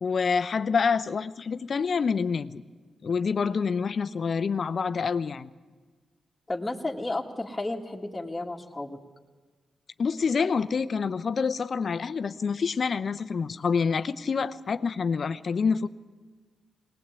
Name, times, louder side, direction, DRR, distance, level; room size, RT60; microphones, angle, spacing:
voice 1, 0.0-2.6 3.0-5.5 10.0-15.9, left 5 dB, 60° left, 13 dB, 0.8 m, -27 dB
voice 2, 6.5-9.0, left 2 dB, 20° left, 0 dB, 2.3 m, -32 dB
19.5 x 19.5 x 8.3 m, 1.4 s
supercardioid pair, 45°, 0 cm